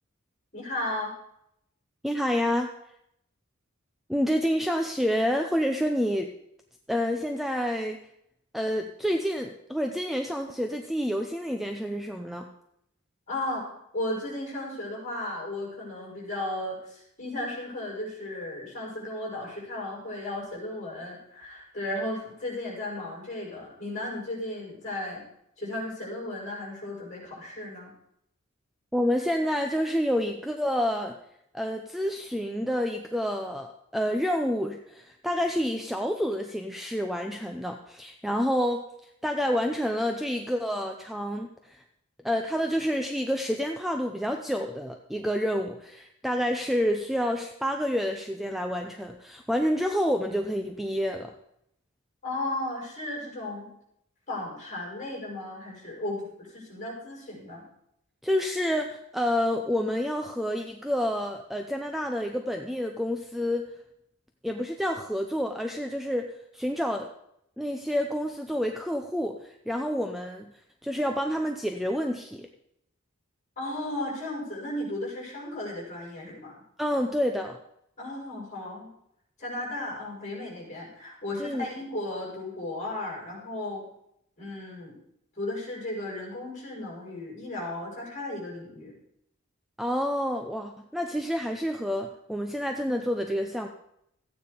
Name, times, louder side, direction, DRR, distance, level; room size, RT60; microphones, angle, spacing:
voice 1, 0.5-1.1 13.3-13.7 13.9-25.2 25.6-27.9 52.2-53.7 54.3-57.7 73.6-76.5 78.0-78.9 79.4-83.9 84.4-85.0 85.4-89.0, left 1 dB, 35° left, -4 dB, 6.3 m, -35 dB
voice 2, 2.0-2.7 4.1-6.3 6.9-8.0 8.5-12.5 28.9-31.2 31.5-38.8 39.2-41.8 42.2-51.3 58.2-63.7 64.4-67.1 67.6-70.5 70.8-72.5 76.8-77.6 81.4-81.7 89.8-93.7, equal, ahead, 4 dB, 0.6 m, -28 dB
14.5 x 9.3 x 5.1 m, 0.76 s
head